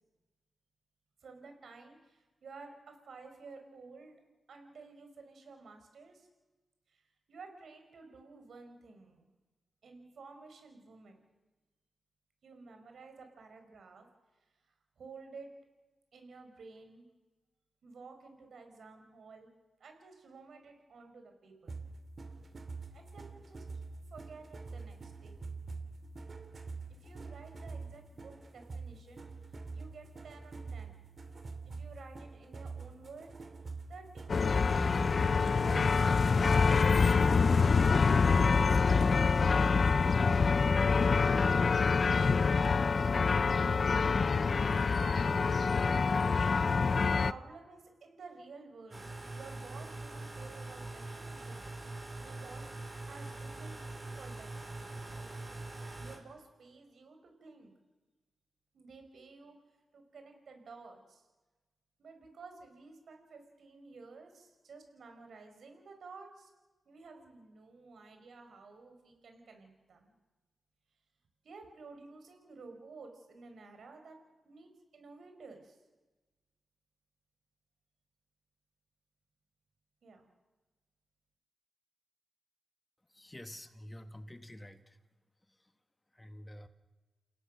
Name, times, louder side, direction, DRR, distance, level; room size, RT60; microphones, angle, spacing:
voice 1, 1.2-4.1 4.5-6.3 6.9-9.3 9.8-11.2 12.4-14.1 14.7-15.5 16.1-17.1 17.8-19.5 19.8-21.8 22.9-23.6 24.1-25.4 26.9-29.3 29.7-31.1 31.6-33.3 33.9-34.7 35.2-37.0 38.1-41.8 42.6-45.6 46.9-51.8 52.2-52.7 53.1-53.9 54.2-55.3 56.0-57.7 58.7-59.5 59.9-61.3 62.0-66.5 66.8-70.1 71.4-74.2 74.4-75.8 80.0-80.3, right 4 dB, 75° right, 5 dB, 4.8 m, -53 dB
sound 1, 21.7-37.9, right 4 dB, 50° right, 2.7 m, -46 dB
sound 2, 34.3-47.3, left 5 dB, 55° left, 0.6 m, -26 dB
sound 3, 48.9-56.2, right 2 dB, 30° right, 5.8 m, -43 dB
voice 2, 83.1-85.0 86.1-86.7, left 1 dB, 20° left, 9 dB, 1.9 m, -48 dB
29.0 x 17.0 x 6.4 m, 1.2 s
cardioid pair, 55°, 0 cm